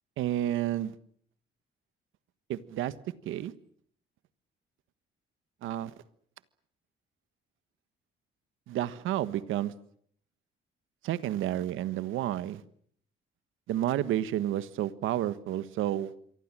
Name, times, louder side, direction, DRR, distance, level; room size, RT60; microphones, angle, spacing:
voice 1, 0.2-0.9 2.5-2.9 3.2-3.5 5.6-5.9 8.7-9.7 11.0-12.6 13.7-16.1, right 12 dB, 90° right, 15 dB, 1.4 m, -30 dB
27.5 x 24.0 x 7.6 m, 0.63 s
cardioid pair, 90°, 20 cm